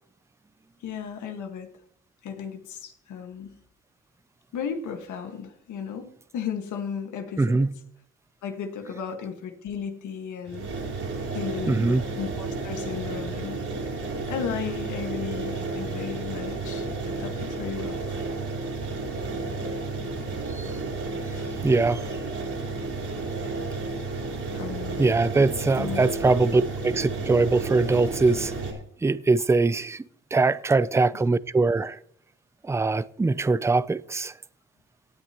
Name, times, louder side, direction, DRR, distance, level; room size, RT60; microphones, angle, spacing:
voice 1, 0.8-1.7 2.2-3.5 4.5-7.6 8.4-10.7 11.3-14.0 14.3-18.2 21.1-21.5 24.5-25.2 25.8-26.0, left 7 dB, 75° left, 1.7 m, -35 dB
voice 2, 7.4-7.7 11.7-12.0 20.5-20.7 21.6-22.0 25.0-28.5 29.0-30.0 30.3-32.0 32.6-34.3, right 3 dB, 10° right, 0.4 m, -22 dB
sound 1, 10.5-28.7, right 3 dB, 50° right, 3.9 m, -32 dB
17.5 x 9.4 x 3.0 m
cardioid pair, 90°, 30 cm